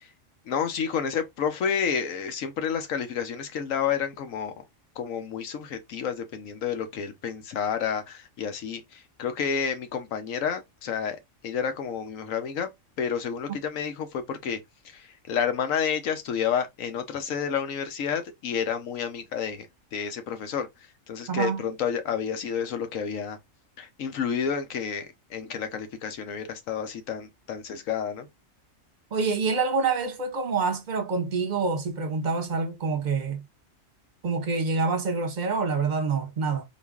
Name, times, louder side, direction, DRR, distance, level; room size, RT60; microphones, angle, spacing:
voice 1, 0.5-4.6 5.0-11.2 11.4-12.7 13.0-14.6 14.8-20.7 21.1-23.4 23.8-28.3, left 7 dB, 85° left, 1.2 m, -30 dB
voice 2, 21.3-21.6 29.1-33.4 34.2-36.6, right 4 dB, 40° right, 0.8 m, -26 dB
3.8 x 2.5 x 3.5 m
omnidirectional pair, 1.3 m